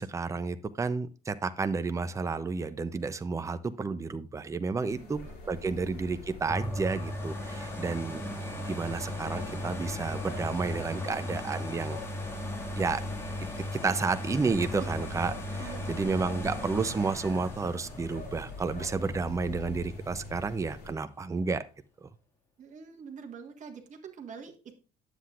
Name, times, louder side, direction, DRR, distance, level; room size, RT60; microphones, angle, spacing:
voice 1, 0.0-8.2 8.7-12.0 12.7-13.0 13.7-21.6, right 4 dB, 20° right, 11 dB, 0.5 m, -31 dB
sound 1, 4.8-20.9, left 2 dB, 65° left, 3.9 m, -44 dB
voice 2, 4.8-5.7 15.6-16.4 22.6-24.7, right 6 dB, 45° right, 2 dB, 1.5 m, -46 dB
sound 2, 6.5-20.2 20.7-20.8, left 1 dB, 15° left, 1.9 m, -37 dB
9.8 x 7.6 x 2.4 m, 0.34 s
cardioid pair, 110°, 17 cm